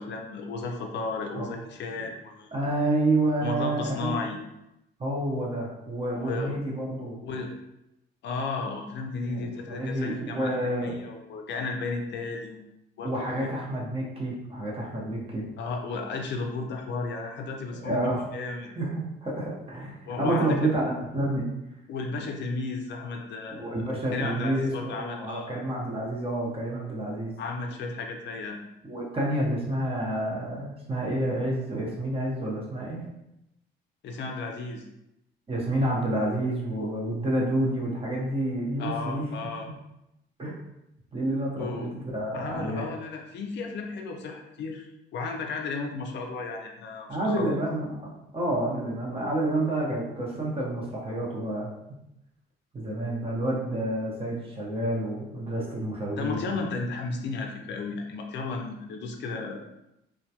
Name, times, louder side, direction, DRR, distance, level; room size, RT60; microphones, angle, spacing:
voice 1, 0.0-2.5 3.4-4.4 6.1-6.6 7.2-7.5 8.2-12.7 13.0-13.5 15.6-18.7 20.0-20.7 21.9-23.8 24.1-25.5 27.4-28.6 34.0-34.8 38.8-39.7 41.6-41.9 42.3-44.9 45.1-47.6 56.2-59.6, left 4 dB, 65° left, 3 dB, 0.4 m, -34 dB
voice 2, 2.5-4.2 5.0-7.2 9.3-10.9 13.0-15.4 17.8-18.3 18.8-21.5 23.6-27.3 28.8-33.1 35.5-39.3 40.4-40.5 41.1-42.9 47.1-51.7 52.7-56.5, right 1 dB, 30° right, -3 dB, 0.8 m, -29 dB
2.2 x 2.1 x 2.7 m, 0.87 s
cardioid pair, 90°, 20 cm